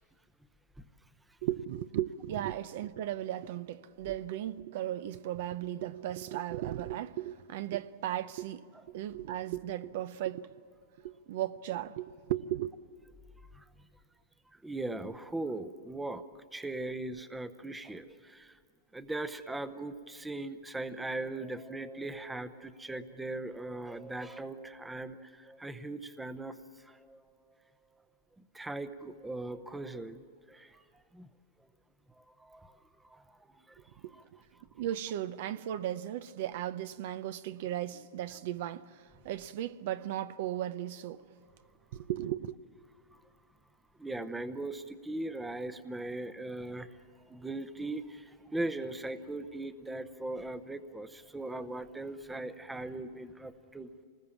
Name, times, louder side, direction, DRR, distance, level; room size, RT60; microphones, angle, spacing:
voice 1, 1.4-10.5 11.0-12.7 34.0-34.1 34.7-41.2 41.9-42.5, right 12 dB, 55° right, 0.7 m, -36 dB
voice 2, 14.5-16.3 16.5-18.6 18.9-27.2 28.5-30.8 31.1-31.3 32.2-34.2 44.0-53.9, right 2 dB, 5° right, 0.8 m, -39 dB
26.5 x 20.0 x 7.2 m
hypercardioid pair, 145°, 0 cm